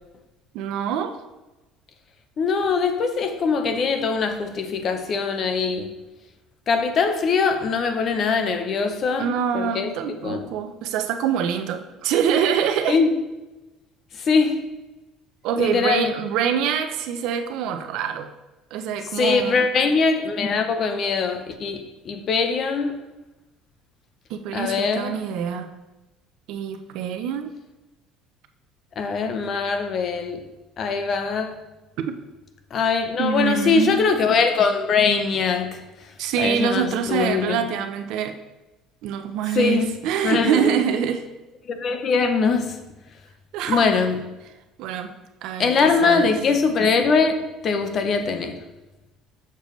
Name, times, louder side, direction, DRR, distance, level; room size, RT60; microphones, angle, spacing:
voice 1, 0.5-1.2 9.2-13.0 15.4-18.3 18.7-19.7 24.3-25.7 26.5-27.6 32.0-32.1 33.2-34.0 36.2-38.4 39.0-41.3 43.5-44.0 44.8-45.1 45.4-45.7 46.0-46.3, right 8 dB, 60° right, 0.6 m, -25 dB
voice 2, 2.4-5.9 6.7-9.3 9.5-9.9 10.2-10.4 12.9-13.1 14.1-14.6 15.6-16.1 19.2-23.1 24.5-25.2 29.0-30.4 30.8-31.5 32.7-35.8 36.4-37.7 39.6-39.9 40.2-40.8 41.7-42.8 43.7-44.1 45.6-48.6, left 5 dB, 35° left, 0.6 m, -22 dB
6.7 x 6.6 x 3.1 m
cardioid pair, 170°, 0 cm